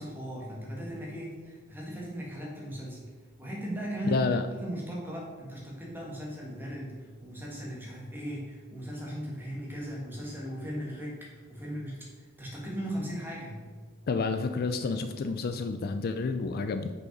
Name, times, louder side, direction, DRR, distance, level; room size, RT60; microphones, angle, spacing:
voice 1, 0.0-3.0 3.4-4.2 4.5-13.7, equal, 10° right, -3 dB, 1.8 m, -38 dB
voice 2, 4.0-4.5 14.1-16.9, left 4 dB, 45° left, 8 dB, 0.4 m, -29 dB
6.3 x 5.5 x 5.2 m, 1.5 s
head